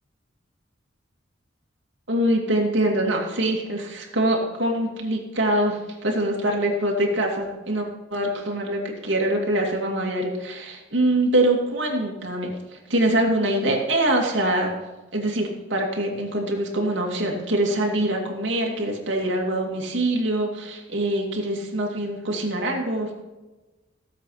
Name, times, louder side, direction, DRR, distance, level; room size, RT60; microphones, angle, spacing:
voice 1, 2.1-14.7 15.1-23.1, right 1 dB, 70° right, 0 dB, 2.8 m, -24 dB
16.5 x 7.6 x 5.9 m, 1.1 s
head